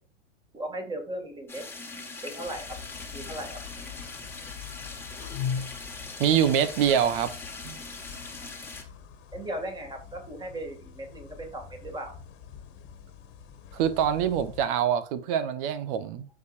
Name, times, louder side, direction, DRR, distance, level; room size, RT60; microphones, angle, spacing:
voice 1, 0.5-1.6 2.2-2.8 3.1-3.6 9.3-12.1, right 1 dB, 10° right, 2.2 m, -37 dB
sound 1, 1.5-8.8, left 3 dB, 5° left, 1.7 m, -41 dB
sound 2, 2.4-14.7, left 7 dB, 35° left, 1.7 m, -42 dB
voice 2, 6.2-7.3 7.6-7.8 13.7-16.2, right 9 dB, 50° right, 1.1 m, -25 dB
14.5 x 5.0 x 2.6 m
hypercardioid pair, 120°, 35 cm